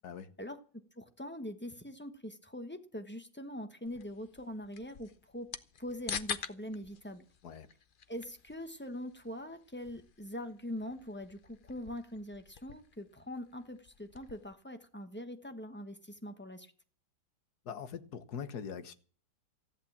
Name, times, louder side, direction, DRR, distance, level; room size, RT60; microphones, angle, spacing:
voice 1, 1.0-5.5 5.8-7.2 8.1-16.7, left 1 dB, 10° left, 0.8 m, -43 dB
sound 1, 3.8-14.5, left 7 dB, 90° left, 0.4 m, -47 dB
voice 2, 17.6-18.9, left 7 dB, 60° left, 1.6 m, -42 dB
14.5 x 11.0 x 7.3 m
omnidirectional pair, 2.1 m